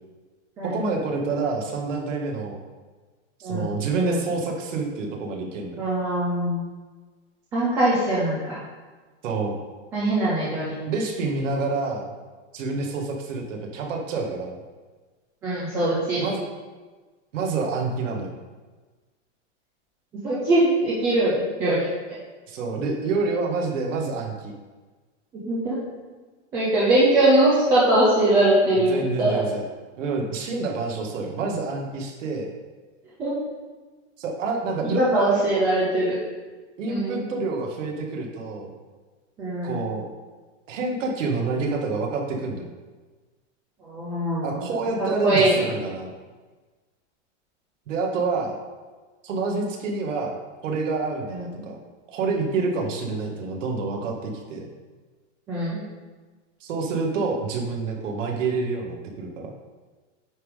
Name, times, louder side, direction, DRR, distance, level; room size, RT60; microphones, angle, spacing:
voice 1, 0.6-2.6 3.4-5.8 9.2-9.5 10.9-12.1 12.5-14.6 16.2-16.4 17.3-18.3 22.5-24.5 28.7-29.6 30.0-32.5 34.2-35.3 36.8-38.7 39.6-40.0 40.7-42.7 44.4-46.1 47.9-48.5 49.2-50.4 50.6-51.8 52.1-54.7 56.6-59.5, right 3 dB, 80° right, 1 dB, 1.7 m, -28 dB
voice 2, 3.4-4.2 5.8-6.6 7.5-8.6 9.9-10.7 15.4-16.2 20.1-21.9 25.4-25.8 26.5-29.4 33.2-33.3 35.0-36.2 36.9-37.2 39.4-39.8 43.8-44.7 45.0-45.7 51.3-51.5 55.5-55.8, right 1 dB, 10° right, -7 dB, 0.3 m, -22 dB
9.2 x 3.7 x 4.9 m, 1.3 s
supercardioid pair, 170°, 37 cm